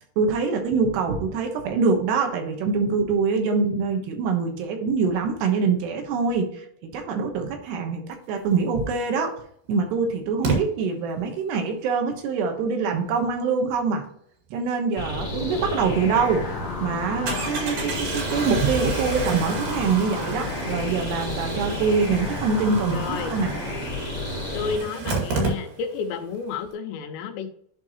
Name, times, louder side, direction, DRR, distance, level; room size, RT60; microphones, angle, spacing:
voice 1, 0.2-8.0 8.3-9.4 9.7-14.0 14.5-16.4 16.8-23.5, right 5 dB, 75° right, 4 dB, 3.2 m, -24 dB
Engine starting, 8.9-9.0 10.4-10.6 15.6-15.7 16.1-16.2 17.3-26.1 26.3-26.4 26.6-26.7, right 4 dB, 60° right, 3.4 m, -31 dB
sound 1, 15.0-24.8, left 2 dB, 25° left, 2.7 m, -31 dB
sound 2, 15.5-21.3, left 7 dB, 70° left, 1.9 m, -40 dB
voice 2, 22.9-23.4 24.5-27.5, left 6 dB, 90° left, 7 dB, 3.1 m, -31 dB
11.0 x 4.5 x 2.9 m, 0.65 s
omnidirectional pair, 5.0 m